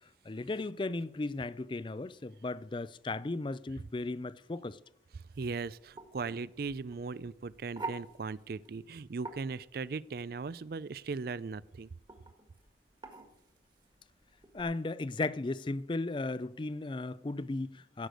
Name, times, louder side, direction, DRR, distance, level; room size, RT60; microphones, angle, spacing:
voice 1, 0.3-4.8 14.5-18.1, left 2 dB, 25° left, 0.4 m, -36 dB
sound 1, 5.3-14.6, right 3 dB, 25° right, 1.6 m, -48 dB
voice 2, 5.4-11.9, right 4 dB, 55° right, 0.4 m, -38 dB
15.0 x 6.6 x 7.7 m
head